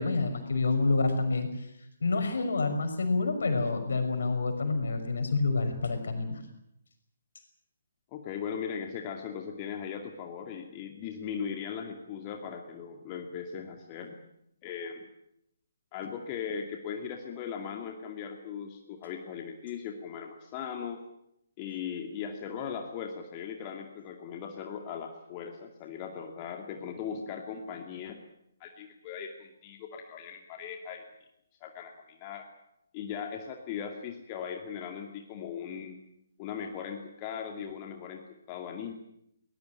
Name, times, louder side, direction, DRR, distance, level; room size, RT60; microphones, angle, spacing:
voice 1, 0.0-1.5 2.0-6.4, left 3 dB, 65° left, 6 dB, 5.8 m, -28 dB
voice 2, 8.1-14.2 14.6-15.1 15.9-21.0 21.6-28.2 28.6-31.0 31.6-32.5 32.9-36.0 36.4-38.2 38.5-38.9, left 7 dB, 30° left, 3 dB, 2.4 m, -38 dB
22.0 x 20.0 x 9.2 m, 0.79 s
figure-of-eight pair, 135°, 0 cm